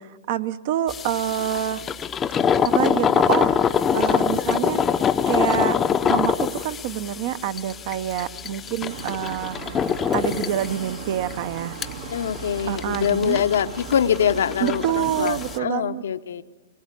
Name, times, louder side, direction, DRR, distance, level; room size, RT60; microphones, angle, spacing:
voice 1, 0.3-1.8 2.6-4.8 5.3-5.8 6.1-9.7 10.1-11.8 12.7-13.4 14.6-16.0, right 11 dB, 50° right, 13 dB, 0.9 m, -27 dB
sound 1, 0.9-15.6, left 7 dB, 15° left, 0.6 m, -25 dB
sound 2, 8.9-15.7, right 7 dB, 65° right, 1.6 m, -38 dB
voice 2, 12.1-16.4, left 8 dB, 75° left, 10 dB, 0.9 m, -24 dB
26.0 x 20.0 x 8.3 m, 1.3 s
hypercardioid pair, 145°, 0 cm